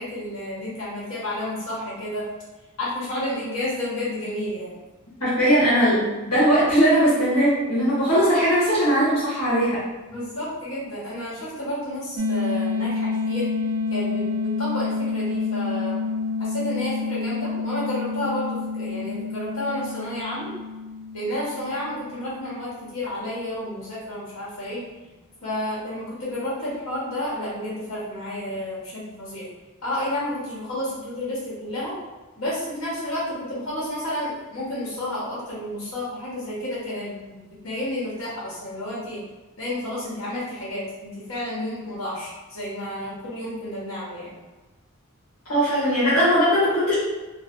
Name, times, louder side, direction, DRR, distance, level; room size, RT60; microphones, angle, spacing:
voice 1, 0.0-2.3 2.8-4.8 10.0-13.5 13.9-16.0 16.4-20.5 21.1-24.8 25.4-29.4 29.8-31.9 32.4-39.2 39.6-44.3, left 1 dB, 65° left, -8 dB, 1.4 m, -31 dB
voice 2, 5.2-9.8 45.5-46.9, equal, 85° left, -10 dB, 1.2 m, -19 dB
sound 1, 12.2-22.9, left 4 dB, 75° right, 0.4 m, -28 dB
3.2 x 2.6 x 2.6 m, 1.2 s
head